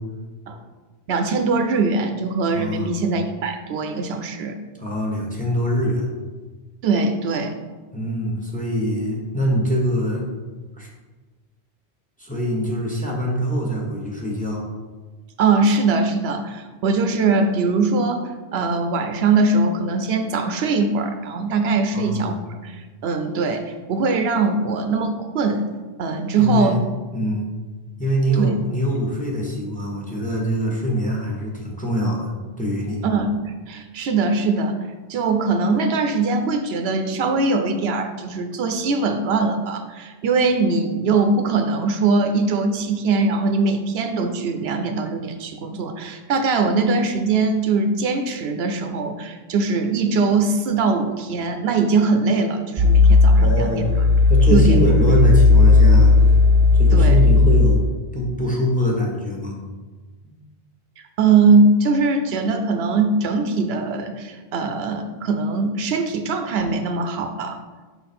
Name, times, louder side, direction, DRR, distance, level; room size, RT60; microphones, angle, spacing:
voice 1, 1.1-4.6 6.8-7.6 15.4-25.7 26.0-26.8 28.4-28.6 33.0-34.8 35.1-53.7 54.5-54.8 56.9-57.2 61.2-67.6, right 3 dB, 75° right, 6 dB, 0.8 m, -21 dB
voice 2, 2.5-3.0 4.8-6.1 7.9-10.2 10.8-10.9 12.2-14.6 21.9-22.4 26.3-26.8 27.1-27.5 28.0-32.3 32.6-33.0 53.4-54.0 54.3-56.3 56.7-57.8 58.1-59.6 60.2-60.4, equal, 10° left, -2 dB, 1.0 m, -23 dB
sound 1, 52.8-57.8, left 3 dB, 35° right, 0.6 m, -14 dB
5.7 x 4.0 x 4.2 m, 1.3 s
omnidirectional pair, 1.1 m